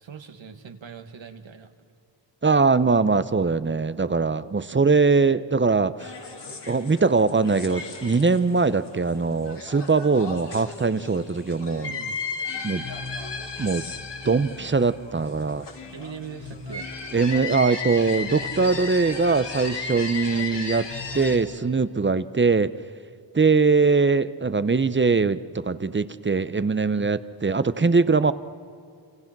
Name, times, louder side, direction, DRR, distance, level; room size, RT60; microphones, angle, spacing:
voice 1, 0.0-1.7 11.8-12.2 15.9-16.9 26.9-27.2, right 6 dB, 85° right, 6 dB, 1.9 m, -40 dB
voice 2, 2.4-6.1 6.7-11.9 12.6-12.8 13.6-13.8 14.2-15.7 17.1-20.9 21.1-22.7 23.3-28.3, right 4 dB, 25° right, 14 dB, 0.7 m, -21 dB
sound 1, 6.0-21.4, left 4 dB, 65° left, 3.6 m, -35 dB
29.5 x 27.0 x 6.1 m, 2.5 s
wide cardioid pair, 105°, 45 cm